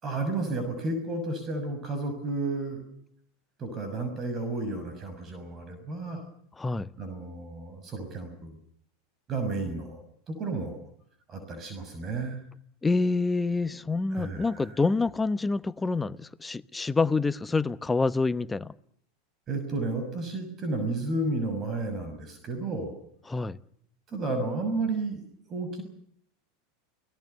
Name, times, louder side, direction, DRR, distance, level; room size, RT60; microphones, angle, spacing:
voice 1, 0.0-2.8 3.6-6.2 7.0-8.6 9.3-10.8 11.3-12.4 14.1-14.8 19.5-23.0 24.1-25.8, right 2 dB, 35° right, 8 dB, 6.1 m, -32 dB
voice 2, 6.6-6.9 12.8-18.7 23.3-23.6, left 3 dB, 15° left, 16 dB, 1.0 m, -27 dB
29.5 x 19.0 x 6.7 m, 0.64 s
hypercardioid pair, 95°, 0 cm